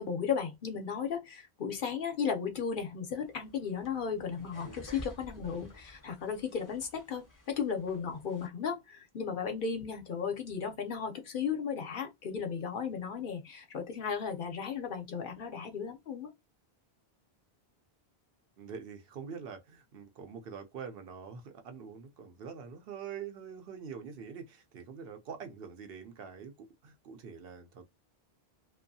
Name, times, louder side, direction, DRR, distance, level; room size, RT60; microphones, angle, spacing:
voice 1, 0.0-16.3, left 6 dB, 60° left, 0.8 m, -35 dB
sound 1, 3.2-8.5, left 1 dB, 25° left, 0.6 m, -52 dB
voice 2, 18.6-27.9, right 6 dB, 70° right, 0.8 m, -45 dB
2.6 x 2.3 x 2.6 m
omnidirectional pair, 1.1 m